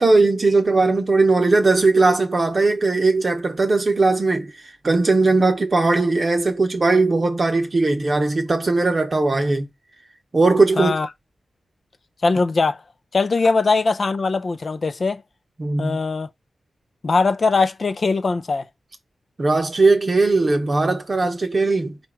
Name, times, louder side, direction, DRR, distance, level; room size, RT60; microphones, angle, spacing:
voice 1, 0.0-4.5 4.8-9.7 10.3-11.0 15.6-16.0 19.4-22.0, right 3 dB, 40° right, 0.9 m, -18 dB
voice 2, 10.8-11.1 12.2-12.8 13.1-15.2 15.8-16.3 17.0-18.6, left 4 dB, 45° left, 0.5 m, -20 dB
4.6 x 2.5 x 4.4 m
wide cardioid pair, 115°, 0 cm